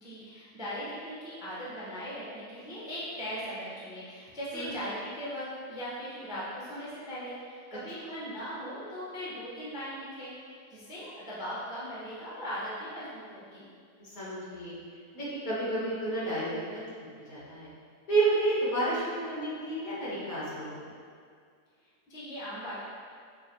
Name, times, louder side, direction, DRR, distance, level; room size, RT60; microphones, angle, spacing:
voice 1, 0.0-13.7 22.1-22.8, equal, 5° right, -9 dB, 0.3 m, -39 dB
voice 2, 14.0-14.7 15.1-16.8 17.3-17.7 18.1-20.9, right 2 dB, 60° left, -8 dB, 1.6 m, -30 dB
5.6 x 2.6 x 2.8 m, 2.1 s
omnidirectional pair, 1.7 m